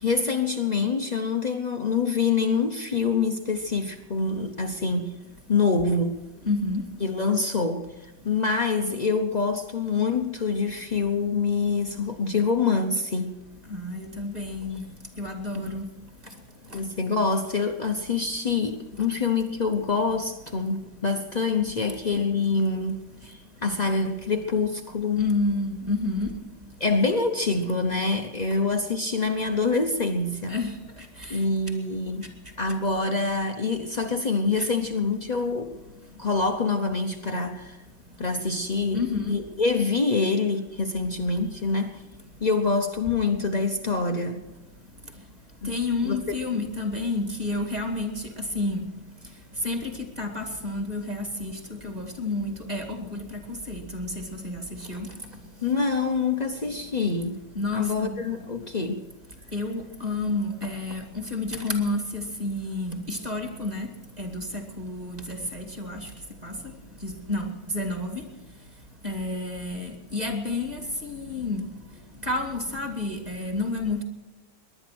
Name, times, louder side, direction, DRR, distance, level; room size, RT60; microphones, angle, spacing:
voice 1, 0.0-5.1 5.5-6.2 7.0-13.4 15.5-15.7 16.7-25.2 26.8-30.6 31.3-32.3 32.6-35.7 36.2-37.8 38.2-42.0 42.4-44.4 45.6-45.7 46.0-46.2 55.6-57.4 57.7-59.0, left 4 dB, 85° left, 4 dB, 0.3 m, -26 dB
voice 2, 6.5-6.8 13.7-14.8 15.2-15.8 25.2-26.3 30.5-30.7 38.9-39.3 45.7-48.1 48.5-48.8 49.6-49.9 50.2-51.5 51.8-53.2 53.7-54.1 54.4-54.6 54.9-55.1 57.6-58.2 59.5-61.0 61.3-63.9 64.2-64.4 64.8-66.0 66.4-66.5 67.0-67.5 67.7-68.1 69.0-71.6 72.3-74.0, left 2 dB, 20° right, 5 dB, 2.1 m, -29 dB
19.0 x 11.0 x 6.1 m, 1.1 s
omnidirectional pair, 2.2 m